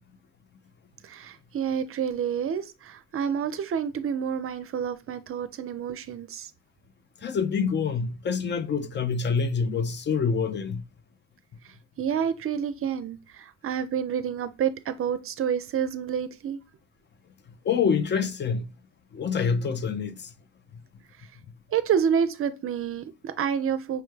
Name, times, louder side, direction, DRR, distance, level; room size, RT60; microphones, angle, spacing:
voice 1, 1.0-6.5 12.0-16.6 21.7-24.0, right 8 dB, 50° right, 0.5 m, -28 dB
voice 2, 7.2-10.8 17.6-18.7 19.1-20.3, left 6 dB, 40° left, 0.4 m, -26 dB
5.6 x 2.1 x 3.1 m
cardioid pair, 75°, 29 cm